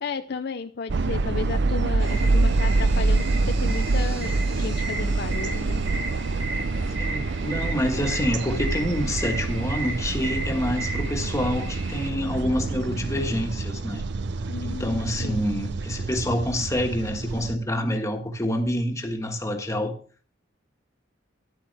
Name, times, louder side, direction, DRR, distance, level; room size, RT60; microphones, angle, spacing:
voice 1, 0.0-5.8 14.5-15.5, left 5 dB, 60° left, 0.5 m, -33 dB
sound 1, 0.9-17.6, right 3 dB, 65° right, 0.6 m, -26 dB
sound 2, 2.0-12.1, right 3 dB, 80° right, 1.9 m, -36 dB
voice 2, 7.0-14.0 14.6-19.9, left 1 dB, 15° left, 1.5 m, -27 dB
12.0 x 10.5 x 3.4 m
head